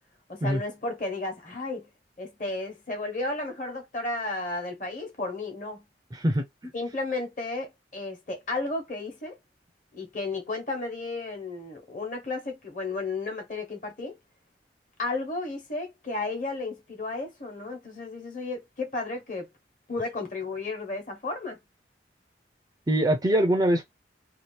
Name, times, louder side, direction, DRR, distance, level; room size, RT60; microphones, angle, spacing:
voice 1, 0.3-1.9 2.2-5.8 6.7-9.4 9.9-14.2 15.0-19.5 19.9-21.6, left 3 dB, 45° left, 1.1 m, -33 dB
voice 2, 6.1-6.7 22.9-23.8, right 1 dB, 20° right, 0.4 m, -23 dB
2.8 x 2.4 x 3.2 m
head